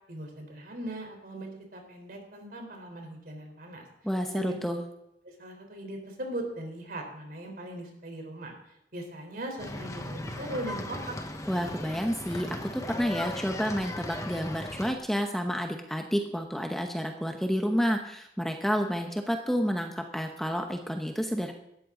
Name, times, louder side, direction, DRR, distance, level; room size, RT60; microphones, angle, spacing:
voice 1, 0.1-3.8 4.3-4.6 5.4-8.5 8.9-11.2, right 1 dB, 55° right, 3 dB, 3.9 m, -39 dB
voice 2, 4.0-4.8 11.5-21.5, equal, ahead, 3 dB, 1.0 m, -30 dB
sound 1, 9.6-14.9, left 1 dB, 20° left, 1.2 m, -37 dB
17.5 x 13.0 x 3.9 m, 0.80 s
head